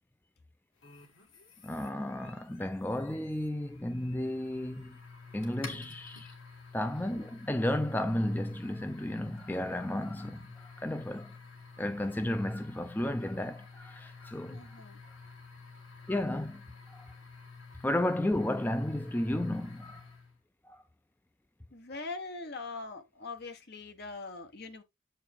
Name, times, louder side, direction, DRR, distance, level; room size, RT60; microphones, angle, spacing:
sound 1, 0.8-20.4, left 4 dB, 80° left, 2.4 m, -51 dB
voice 1, 1.6-5.0 5.3-6.3 6.7-11.3 11.8-14.7 16.1-16.6 16.9-17.1 17.8-20.0 20.6-20.8, left 1 dB, 10° left, 0.4 m, -33 dB
voice 2, 6.9-7.3 14.5-15.0 21.7-24.8, left 3 dB, 55° left, 1.2 m, -42 dB
7.5 x 4.6 x 3.6 m
head